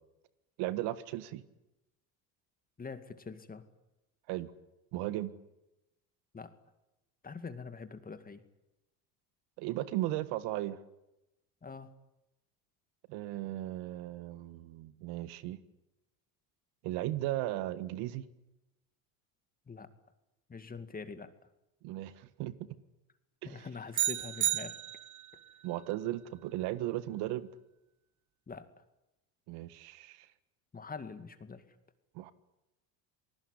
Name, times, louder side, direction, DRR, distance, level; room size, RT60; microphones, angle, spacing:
voice 1, 0.6-1.4 4.3-4.5 4.9-5.3 9.6-10.8 13.1-15.6 16.8-18.2 21.8-22.8 23.4-23.6 25.6-27.5 29.5-30.3 32.1-32.3, right 15 dB, 65° right, 14 dB, 1.6 m, -36 dB
voice 2, 2.8-3.7 6.3-6.6 7.2-8.4 11.6-11.9 19.7-19.9 20.5-21.3 23.5-24.8 28.5-28.7 30.7-31.7, left 5 dB, 20° left, 10 dB, 2.3 m, -44 dB
sound 1, 23.9-25.4, right 13 dB, 45° right, 1.4 m, -32 dB
28.0 x 19.5 x 9.9 m, 0.93 s
supercardioid pair, 100°, 42 cm